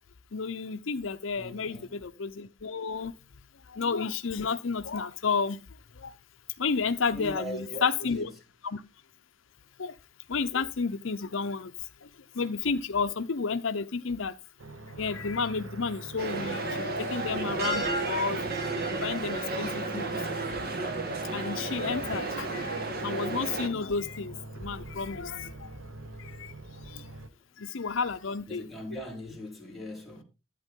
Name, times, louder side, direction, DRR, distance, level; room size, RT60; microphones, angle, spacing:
voice 1, 0.3-3.2 3.5-5.6 5.9-6.1 6.6-8.3 8.6-8.8 9.8-10.0 10.3-14.3 15.0-18.4 18.8-20.3 20.8-21.0 21.3-25.8 26.2-27.1 27.6-28.6, left 5 dB, 70° left, 0.7 m, -32 dB
voice 2, 1.3-2.1 7.1-8.3 27.3-27.4 28.5-30.2, equal, ahead, 3.2 m, -40 dB
sound 1, 14.6-27.3, right 2 dB, 80° right, 1.0 m, -44 dB
sound 2, 16.2-23.7, right 2 dB, 50° right, 1.7 m, -32 dB
11.0 x 8.8 x 3.7 m
head